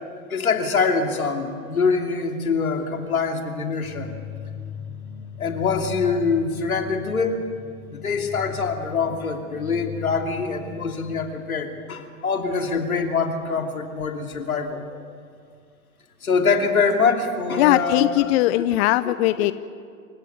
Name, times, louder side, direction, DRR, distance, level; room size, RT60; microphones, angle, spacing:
voice 1, 0.3-4.1 5.4-7.5 7.9-14.8 16.2-18.2 19.1-19.5, left 5 dB, 90° left, 4 dB, 2.8 m, -24 dB
sound 1, 3.8-11.4, left 8 dB, 10° left, 4.9 m, -38 dB
voice 2, 17.6-19.5, left 16 dB, 50° left, 14 dB, 0.8 m, -20 dB
27.5 x 16.0 x 9.3 m, 2.2 s
hypercardioid pair, 105°, 41 cm